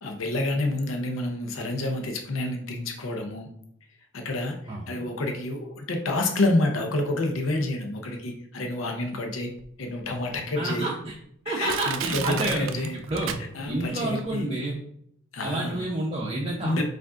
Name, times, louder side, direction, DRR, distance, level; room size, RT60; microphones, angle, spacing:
voice 1, 0.0-3.5 4.1-9.5 9.8-10.9 11.5-12.9 13.5-14.5 15.3-15.9 16.6-16.8, left 2 dB, 90° left, 3 dB, 0.7 m, -28 dB
Crushing, 9.6-9.7 10.3-10.4 11.1-11.2 11.7-13.9 14.2-14.3, right 8 dB, 85° right, 0.4 m, -33 dB
voice 2, 10.6-11.2 11.4-13.4 13.7-14.8 15.4-16.8, right 2 dB, 30° right, -2 dB, 0.6 m, -29 dB
4.7 x 2.5 x 3.6 m, 0.71 s
head